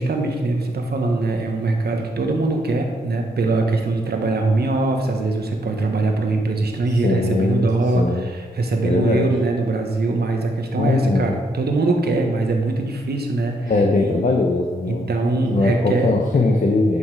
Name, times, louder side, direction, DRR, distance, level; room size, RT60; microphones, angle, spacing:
voice 1, 0.0-13.7 14.0-14.1 14.9-16.1, right 2 dB, 75° right, 3 dB, 1.3 m, -22 dB
voice 2, 7.0-8.3 8.8-9.3 10.8-11.4 13.7-15.1 15.5-17.0, left 3 dB, 50° left, 2 dB, 0.9 m, -20 dB
10.0 x 5.6 x 4.8 m, 1.5 s
wide cardioid pair, 95°, 17 cm